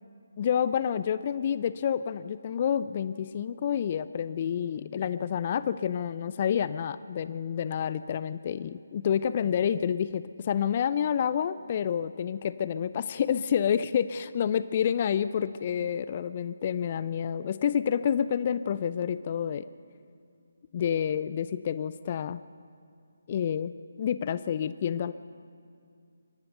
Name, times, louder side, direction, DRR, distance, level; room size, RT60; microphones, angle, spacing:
voice 1, 0.4-19.7 20.7-22.4 23.3-25.1, left 8 dB, 35° left, 15 dB, 0.4 m, -29 dB
23.0 x 17.5 x 6.7 m, 2.4 s
figure-of-eight pair, 150°, 0 cm